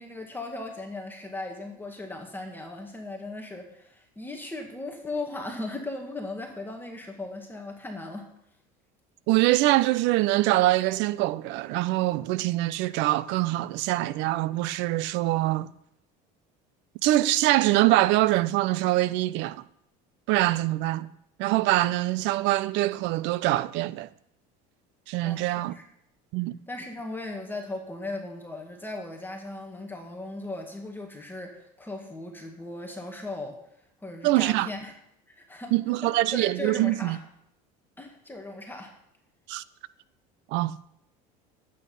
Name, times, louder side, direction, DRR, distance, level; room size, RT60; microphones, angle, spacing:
voice 1, 0.0-8.3 25.2-25.8 26.7-33.6 34.0-34.9 35.4-35.7 36.0-37.2 38.0-38.9, left 2 dB, 10° left, 1.9 m, -37 dB
voice 2, 9.3-15.7 17.0-19.6 20.3-21.1 21.4-24.1 25.1-25.8 26.3-26.6 34.2-34.7 35.7-37.2 39.5-39.6 40.5-40.7, right 17 dB, 65° right, 0.6 m, -24 dB
12.0 x 8.7 x 5.5 m
supercardioid pair, 105°, 20 cm